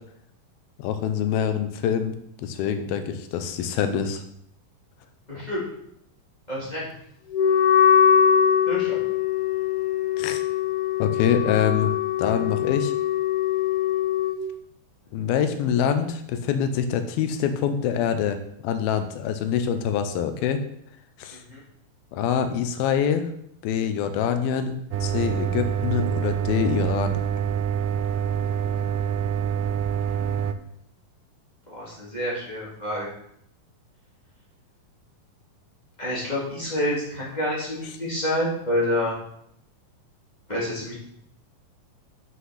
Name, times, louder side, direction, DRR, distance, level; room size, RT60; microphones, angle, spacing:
voice 1, 0.8-4.2 10.2-10.4 11.0-11.9 12.2-12.9 15.1-20.6 21.2-21.4 22.1-23.3 23.6-24.8 25.0-27.2, left 8 dB, 90° left, 9 dB, 2.7 m, -25 dB
voice 2, 5.3-5.6 6.5-6.9 8.7-9.0 21.3-21.6 30.1-30.6 31.7-33.1 36.0-39.1 40.5-40.9, left 1 dB, 15° left, -6 dB, 2.2 m, -28 dB
Wind instrument woodwind instrument, 7.3-14.4, left 8 dB, 75° left, 1.9 m, -22 dB
sound 1, 24.9-30.5, right 8 dB, 80° right, 2.0 m, -26 dB
7.9 x 5.9 x 5.7 m, 0.73 s
omnidirectional pair, 4.2 m